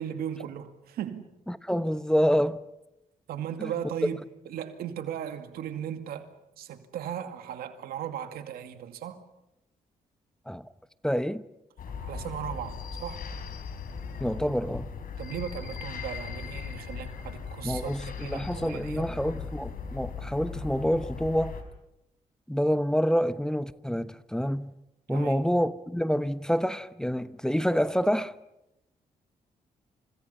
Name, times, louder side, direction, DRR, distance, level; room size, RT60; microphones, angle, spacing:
voice 1, 0.0-1.3 3.3-4.2 4.5-9.2 12.0-13.3 15.2-19.1 25.1-25.4, right 9 dB, 90° right, 2.2 m, -37 dB
voice 2, 1.5-2.6 3.6-3.7 10.5-10.7 11.0-11.4 14.2-14.9 17.6-21.6 22.5-24.7 25.1-28.3, equal, 5° left, 1.1 m, -27 dB
sound 1, 11.8-21.6, left 6 dB, 70° left, 4.5 m, -38 dB
30.0 x 28.0 x 5.6 m
cardioid pair, 65°, 15 cm